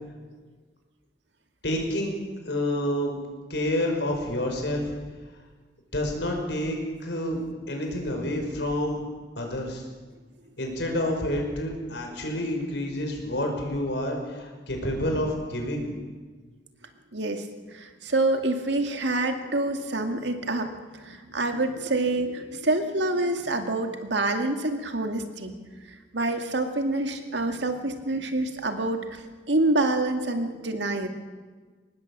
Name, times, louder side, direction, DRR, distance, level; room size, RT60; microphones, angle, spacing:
voice 1, 1.6-2.2 2.4-3.2 3.5-4.9 5.9-9.0 9.4-9.8 10.6-15.9, left 1 dB, 70° left, 2 dB, 5.7 m, -28 dB
voice 2, 17.1-17.4 17.7-20.7 21.0-25.5 26.1-29.2 29.5-31.1, right 2 dB, 70° right, 5 dB, 2.2 m, -27 dB
24.5 x 19.5 x 7.4 m, 1.4 s
head